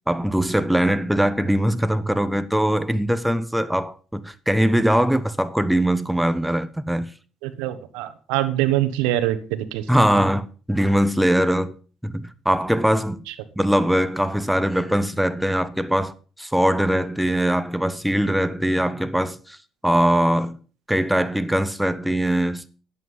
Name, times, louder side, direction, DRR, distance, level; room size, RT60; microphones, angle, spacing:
voice 1, 0.1-7.1 9.9-11.7 12.0-13.3 13.6-19.6 19.8-20.6 20.9-22.7, equal, 5° right, 1.1 m, -21 dB
voice 2, 7.4-9.8 13.3-13.4, right 14 dB, 90° right, 1.1 m, -24 dB
11.0 x 8.2 x 5.5 m
supercardioid pair, 70°, 0 cm